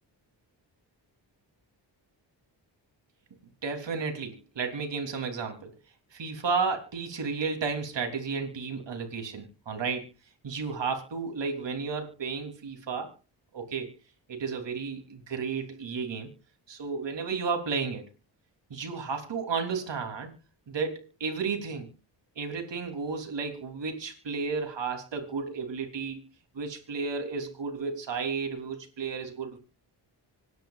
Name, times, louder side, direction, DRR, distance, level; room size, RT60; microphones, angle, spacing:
voice 1, 3.6-5.7 6.1-10.1 10.4-13.1 13.5-13.9 14.3-16.3 16.7-18.0 18.7-20.3 20.7-21.9 22.4-26.2 26.5-29.6, right 5 dB, 70° right, 3.3 m, -33 dB
26.0 x 10.5 x 2.4 m
cardioid pair, 70°, 44 cm